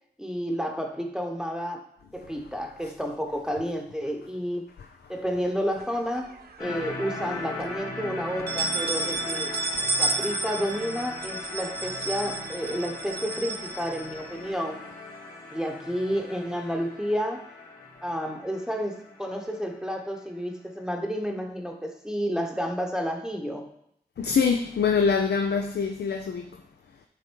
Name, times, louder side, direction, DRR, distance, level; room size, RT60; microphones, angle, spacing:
voice 1, 0.2-1.8 2.1-4.6 5.1-9.5 10.0-14.8 15.5-17.5 18.0-23.7, equal, 5° right, 3 dB, 0.9 m, -31 dB
voice 2, 2.2-2.9 4.8-5.5 24.2-26.6, left 5 dB, 85° left, 5 dB, 0.5 m, -26 dB
sound 1, 5.8-6.7 7.1-7.2 7.6-7.7 8.3-14.5, right 3 dB, 70° right, 0.7 m, -32 dB
sound 2, 6.6-20.1, left 2 dB, 60° left, 2.3 m, -39 dB
7.8 x 3.8 x 4.5 m, 0.73 s
cardioid pair, 40°, 17 cm